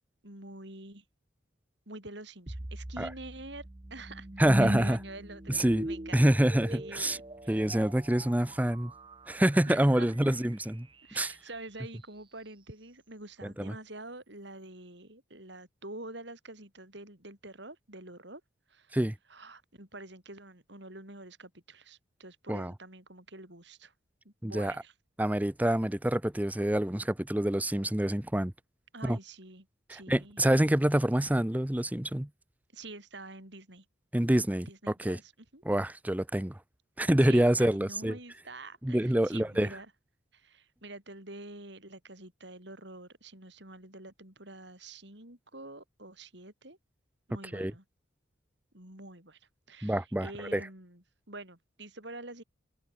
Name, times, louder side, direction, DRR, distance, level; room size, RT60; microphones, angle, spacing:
voice 1, 0.2-1.0 1.9-6.2 6.7-7.6 9.7-10.4 11.0-18.4 18.7-19.0 19.3-23.9 24.2-24.9 28.9-30.4 32.7-33.8 34.7-35.6 37.2-39.9 40.3-46.8 47.3-47.8 48.7-52.4, right 2 dB, 60° right, 6.9 m, -47 dB
sound 1, 2.5-11.6, right 1 dB, 25° right, 1.1 m, -40 dB
voice 2, 4.4-5.0 5.5-5.9 6.1-7.2 7.5-8.9 9.3-10.9 11.1-11.3 13.6-13.8 18.9-19.1 22.5-22.7 24.4-24.7 25.2-28.5 29.0-29.2 29.9-32.3 34.1-34.7 35.0-35.2 35.6-36.6 37.0-38.2 38.8-39.7 47.5-47.7 49.8-50.7, right 1 dB, 10° right, 0.6 m, -26 dB
head